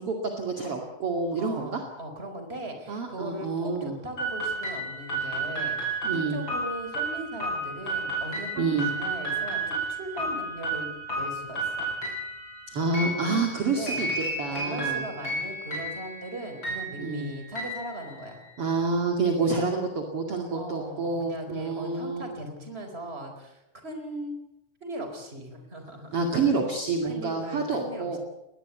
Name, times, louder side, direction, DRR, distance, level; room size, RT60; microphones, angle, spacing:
voice 1, 0.0-1.8 2.9-4.0 6.0-6.4 8.6-8.9 12.7-15.0 17.0-17.3 18.6-22.2 26.1-28.2, right 4 dB, 45° right, 2 dB, 3.1 m, -28 dB
voice 2, 1.3-11.9 13.6-14.0 14.5-18.4 20.5-24.4 24.8-26.2 27.0-28.2, right 1 dB, 15° right, 5 dB, 4.5 m, -39 dB
sound 1, 4.2-18.6, right 2 dB, 35° left, 7.4 m, -32 dB
21.0 x 19.5 x 8.4 m, 0.89 s
omnidirectional pair, 3.8 m